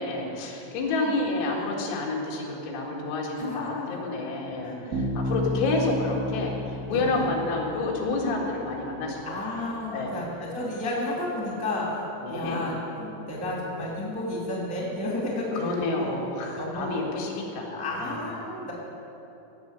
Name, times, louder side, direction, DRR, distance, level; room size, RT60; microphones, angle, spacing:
voice 1, 0.0-6.5 6.9-10.1 12.2-12.6 15.5-18.3, left 3 dB, 90° left, -2 dB, 4.3 m, -29 dB
voice 2, 3.3-4.1 4.6-4.9 6.9-7.3 8.0-8.4 9.2-11.9 12.3-16.2 16.6-17.0 17.7-18.7, left 1 dB, 5° left, -4 dB, 1.4 m, -32 dB
Bass guitar, 4.9-8.6, equal, 25° right, 1.3 m, -32 dB
16.5 x 6.5 x 8.2 m, 2.9 s
omnidirectional pair, 5.3 m